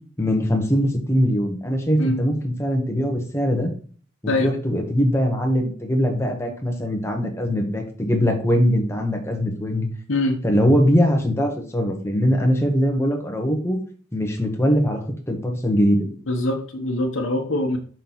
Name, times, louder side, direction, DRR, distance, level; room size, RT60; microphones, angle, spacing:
voice 1, 0.2-3.7 4.2-9.9 10.4-13.8 14.1-16.1, equal, 15° left, 2 dB, 1.0 m, -21 dB
voice 2, 10.1-10.4 16.3-17.8, left 1 dB, 70° left, 1 dB, 0.9 m, -23 dB
6.0 x 5.4 x 3.0 m, 0.43 s
head